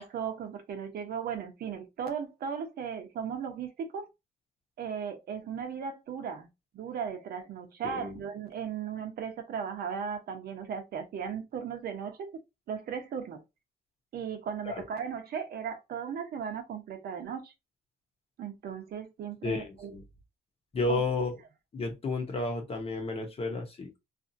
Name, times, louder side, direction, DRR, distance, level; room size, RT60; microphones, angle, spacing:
voice 1, 0.0-4.1 4.8-6.5 6.7-12.3 12.7-13.4 14.1-17.5 18.4-19.9 20.9-21.0, right 7 dB, 60° right, 0.8 m, -36 dB
voice 2, 7.8-8.2 14.7-14.8 19.4-20.0 20.7-21.4 21.7-24.0, left 3 dB, 35° left, 0.9 m, -32 dB
2.7 x 2.5 x 2.6 m
cardioid pair, 115°, 18 cm